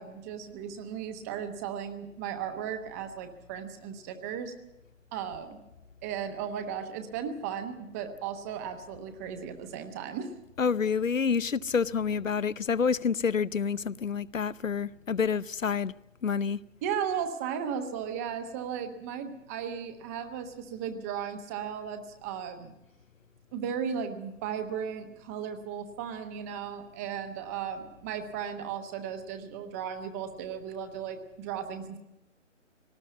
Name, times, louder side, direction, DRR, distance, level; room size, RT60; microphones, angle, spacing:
voice 1, 0.0-4.5 5.1-5.6 6.0-10.3 16.8-22.7 23.5-32.0, right 8 dB, 10° right, 1.0 m, -36 dB
voice 2, 10.6-15.9 16.2-16.6, left 6 dB, 85° left, 0.8 m, -28 dB
18.5 x 18.5 x 8.4 m
figure-of-eight pair, 150°, 38 cm